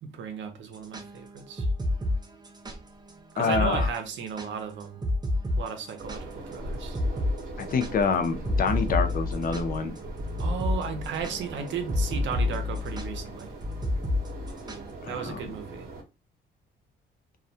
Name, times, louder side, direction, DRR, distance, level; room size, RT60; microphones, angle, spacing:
voice 1, 0.0-1.7 3.3-5.0 5.6-7.0 10.4-13.5 15.0-15.9, right 6 dB, 70° right, 0.6 m, -35 dB
sound 1, 0.8-2.8 3.1-3.2 3.5-3.9 4.2-6.6 6.9-7.3 7.6-14.9, left 2 dB, 20° right, 0.5 m, -29 dB
voice 2, 3.4-3.9 7.7-9.9 15.0-15.4, left 5 dB, 45° left, 0.5 m, -26 dB
sound 2, 6.0-16.0, right 2 dB, 50° right, 0.9 m, -40 dB
2.3 x 2.1 x 2.6 m
cardioid pair, 90°, 20 cm